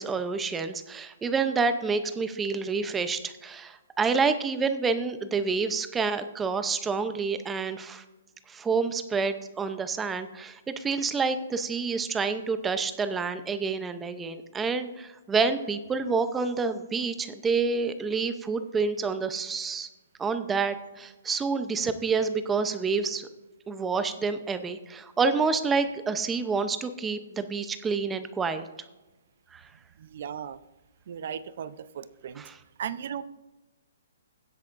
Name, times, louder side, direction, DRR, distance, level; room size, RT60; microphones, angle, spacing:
voice 1, 0.0-8.0 8.5-19.9 20.2-23.3 23.7-28.7 29.5-29.6 32.4-32.6, right 4 dB, 10° right, 10 dB, 0.6 m, -28 dB
voice 2, 30.0-30.6 31.1-32.4 32.8-33.2, right 8 dB, 55° right, 15 dB, 0.6 m, -36 dB
16.0 x 8.3 x 2.6 m, 1.1 s
hypercardioid pair, 155°, 0 cm